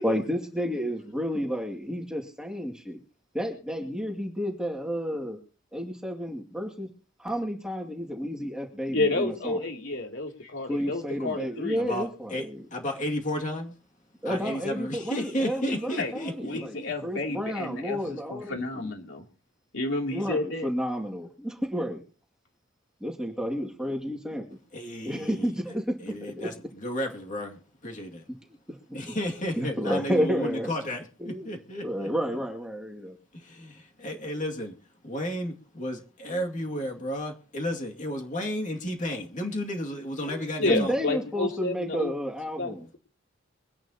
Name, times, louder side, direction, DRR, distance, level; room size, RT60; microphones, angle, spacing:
voice 1, 0.0-3.0 3.3-5.4 5.7-6.9 7.2-9.6 10.7-12.6 14.2-18.9 20.1-22.0 23.0-24.4 25.0-26.5 28.3-28.4 28.7-28.8 29.6-30.7 31.2-31.6 31.8-33.2 40.2-42.9, equal, 5° right, 2.3 m, -31 dB
voice 2, 8.9-11.8 16.0-16.1 16.4-19.2 19.7-20.7 40.6-42.1 42.6-43.0, left 2 dB, 60° left, 2.9 m, -30 dB
voice 3, 11.8-13.7 14.2-16.9 24.7-25.5 26.0-28.2 28.9-32.1 33.3-34.8 35.0-41.0, equal, 35° left, 2.3 m, -33 dB
23.5 x 11.0 x 2.9 m
head